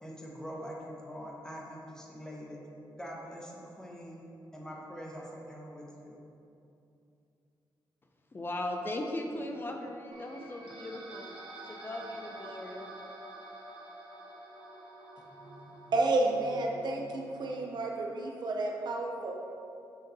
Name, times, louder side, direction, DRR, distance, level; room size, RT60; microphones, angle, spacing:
voice 1, 0.0-2.6 3.0-4.2 4.5-6.2, equal, 10° left, -3 dB, 1.0 m, -44 dB
voice 2, 8.3-11.3 11.7-12.9, left 1 dB, 25° left, 3 dB, 0.5 m, -38 dB
sound 1, 10.1-17.8, right 1 dB, 75° right, 1.0 m, -48 dB
voice 3, 15.9-19.4, right 2 dB, 60° right, 1 dB, 0.6 m, -31 dB
6.8 x 5.6 x 2.6 m, 2.7 s
cardioid pair, 105°, 8 cm